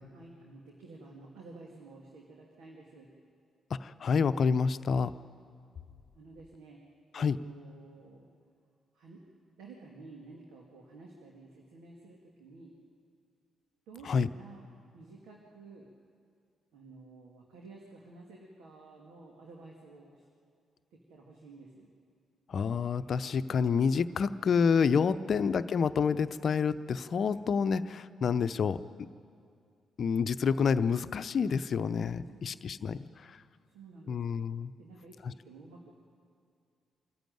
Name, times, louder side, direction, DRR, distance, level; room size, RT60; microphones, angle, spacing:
voice 1, 0.1-3.1 6.1-6.8 7.1-8.3 8.9-9.2 9.6-12.7 13.9-15.9 16.7-20.2 20.9-21.9 25.1-25.3 32.2-32.5 32.9-33.1 33.7-34.5 34.8-35.9, right 3 dB, 75° right, -1 dB, 2.2 m, -52 dB
voice 2, 3.8-5.1 7.1-7.4 14.1-14.3 22.5-28.8 30.0-33.1 34.1-34.7, left 6 dB, 55° left, 14 dB, 0.7 m, -28 dB
25.0 x 14.5 x 9.2 m, 2.4 s
hypercardioid pair, 40°, 0 cm